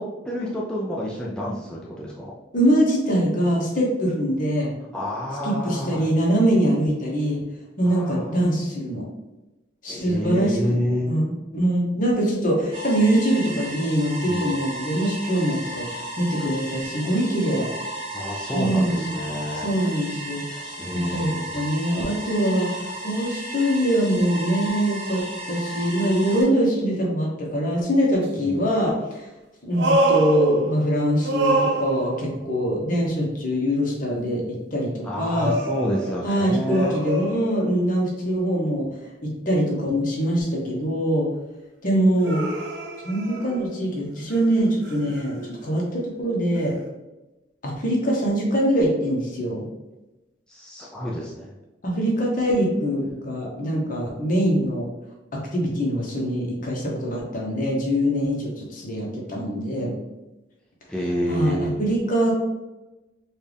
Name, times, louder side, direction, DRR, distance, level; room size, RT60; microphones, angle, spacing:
voice 1, 0.0-2.3 4.9-6.1 7.9-8.2 9.9-11.1 14.2-14.6 18.1-19.7 20.8-21.5 28.4-28.7 32.3-32.6 35.0-36.9 50.5-51.5 60.9-61.7, equal, 5° left, -5 dB, 0.5 m, -29 dB
voice 2, 2.5-4.7 5.4-7.4 7.8-9.0 9.8-10.6 11.1-17.7 18.5-19.1 19.6-29.3 29.6-34.4 34.7-35.5 36.2-38.9 39.2-41.3 41.8-42.4 43.0-46.8 47.6-49.6 51.8-54.9 55.3-59.9 61.3-62.3, equal, 50° left, -2 dB, 1.1 m, -23 dB
sound 1, 12.7-26.4, right 1 dB, 30° right, 1.1 m, -34 dB
sound 2, 28.2-28.3 29.7-31.0 31.2-32.4 35.3-37.9 42.2-43.9 44.3-45.7 46.7-46.8, right 1 dB, 70° right, 0.6 m, -26 dB
4.4 x 2.4 x 3.4 m, 1.0 s
head